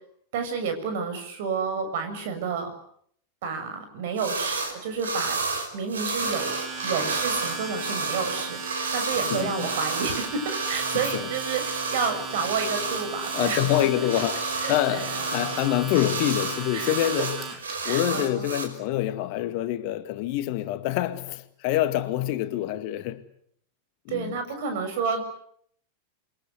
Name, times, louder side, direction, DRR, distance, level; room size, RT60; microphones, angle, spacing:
voice 1, 0.3-2.7 3.4-5.4 5.7-6.6 6.8-13.9 14.6-15.8 16.7-17.1 17.7-18.5 24.1-25.2, right 5 dB, 55° right, 7.1 m, -30 dB
sound 1, 4.2-4.7 5.0-18.6, right 4 dB, 70° right, 5.7 m, -31 dB
Domestic sounds home sounds, 6.1-17.7, right 4 dB, 30° right, 5.9 m, -36 dB
voice 2, 9.3-9.8 11.1-11.3 13.3-14.4 14.7-17.4 17.8-23.2 24.1-24.4, left 13 dB, 45° left, 2.0 m, -26 dB
29.0 x 23.5 x 8.2 m
figure-of-eight pair, 90°, 0 cm